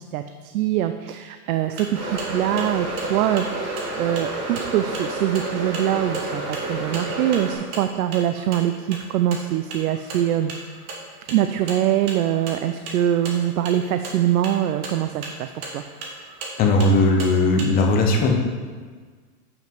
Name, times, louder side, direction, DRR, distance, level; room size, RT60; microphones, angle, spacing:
voice 1, 0.1-10.5 11.3-15.8, right 11 dB, 65° right, 9 dB, 0.5 m, -23 dB
sound 1, 1.5-17.6, right 3 dB, 40° right, 1.4 m, -38 dB
sound 2, 1.9-7.5, right 1 dB, 85° right, 2.5 m, -30 dB
voice 2, 16.6-18.3, left 2 dB, 20° left, 1 dB, 0.7 m, -18 dB
7.4 x 5.8 x 4.5 m, 1.5 s
supercardioid pair, 155°, 47 cm